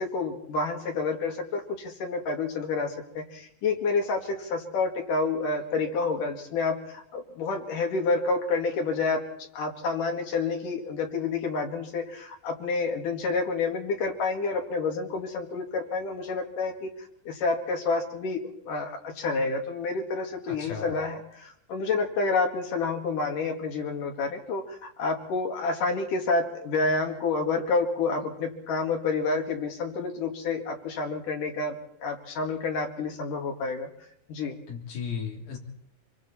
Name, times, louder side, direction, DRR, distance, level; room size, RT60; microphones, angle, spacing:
voice 1, 0.0-9.2 9.5-16.9 17.3-33.9 34.3-34.6, left 4 dB, 65° left, 3 dB, 3.5 m, -29 dB
voice 2, 20.5-20.9 34.7-35.6, left 6 dB, 90° left, 0 dB, 5.3 m, -35 dB
26.0 x 23.5 x 4.3 m, 0.71 s
omnidirectional pair, 4.1 m